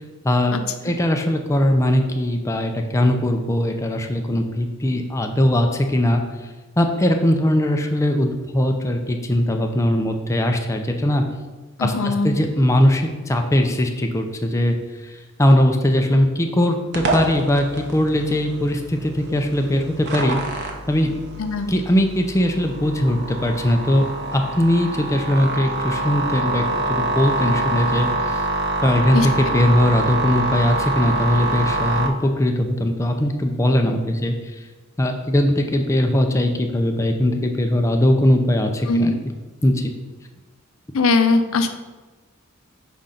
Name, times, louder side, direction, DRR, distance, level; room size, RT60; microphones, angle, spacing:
voice 1, 0.2-0.6 0.8-6.2 6.8-11.2 11.8-14.8 15.4-20.4 20.9-21.1 21.7-24.0 24.3-26.6 26.9-28.1 28.8-34.3 35.0-39.1 39.6-39.9, left 1 dB, 15° left, 4 dB, 0.4 m, -20 dB
voice 2, 11.8-12.4 21.4-21.7 29.1-29.3 38.9-39.2 40.9-41.7, left 3 dB, 70° left, 8 dB, 0.5 m, -20 dB
sound 1, 16.9-32.1, right 2 dB, 55° right, 0.8 m, -26 dB
5.0 x 3.8 x 5.6 m, 1.2 s
head